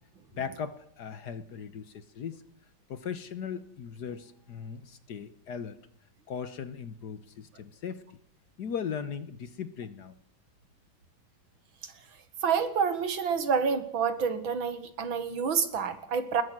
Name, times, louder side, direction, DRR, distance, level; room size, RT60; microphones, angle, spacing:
voice 1, 0.4-2.4 2.9-5.8 6.3-8.0 8.6-10.2, left 7 dB, 55° left, 13 dB, 1.5 m, -38 dB
voice 2, 12.4-16.4, right 6 dB, 70° right, 11 dB, 2.4 m, -28 dB
21.0 x 20.5 x 6.1 m, 0.69 s
omnidirectional pair, 2.3 m